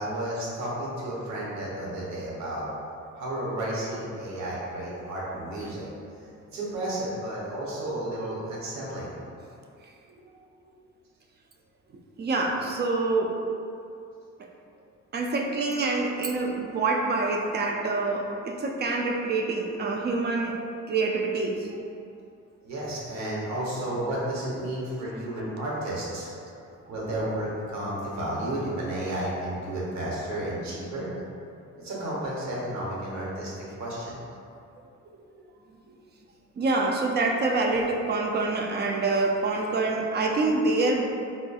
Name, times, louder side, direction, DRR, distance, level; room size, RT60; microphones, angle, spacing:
voice 1, 0.0-2.6 3.1-5.9 6.5-9.1 22.6-26.3 26.9-31.1 31.8-34.2, right 1 dB, 65° right, -6 dB, 1.0 m, -32 dB
voice 2, 12.2-13.3 15.1-20.6 20.9-21.8 26.5-26.6 26.8-26.9 35.9-36.0 36.6-41.0, right 3 dB, 35° right, 1 dB, 0.4 m, -26 dB
3.7 x 2.5 x 2.3 m, 2.5 s
cardioid pair, 90°, 30 cm